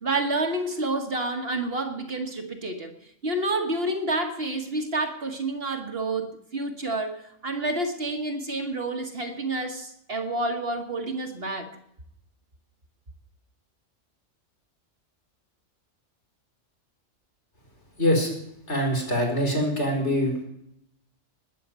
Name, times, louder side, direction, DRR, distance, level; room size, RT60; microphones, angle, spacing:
voice 1, 0.0-11.7, right 2 dB, 50° right, 1.8 m, -29 dB
voice 2, 18.0-18.3 18.7-20.4, equal, 60° left, 5.0 m, -24 dB
19.5 x 6.9 x 9.5 m
omnidirectional pair, 1.3 m